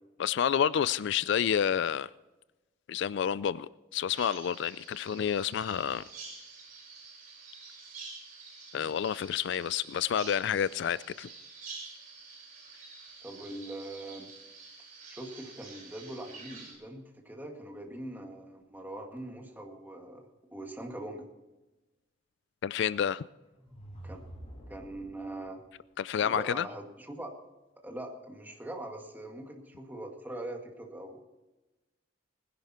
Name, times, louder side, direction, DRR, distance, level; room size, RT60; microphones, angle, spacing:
voice 1, 0.2-2.1 2.9-6.0 8.7-11.3 22.6-23.2 26.0-26.7, left 8 dB, 65° left, 0.3 m, -29 dB
Bird vocalization bird call bird song, 4.1-16.7, right 4 dB, 40° right, 5.5 m, -48 dB
voice 2, 13.2-14.3 15.1-21.2 24.0-24.2 24.7-25.6 26.2-27.3 27.8-31.2, right 1 dB, 10° right, 1.9 m, -42 dB
sound 1, 23.6-25.5, right 1 dB, 35° left, 3.9 m, -48 dB
19.5 x 10.5 x 4.3 m
head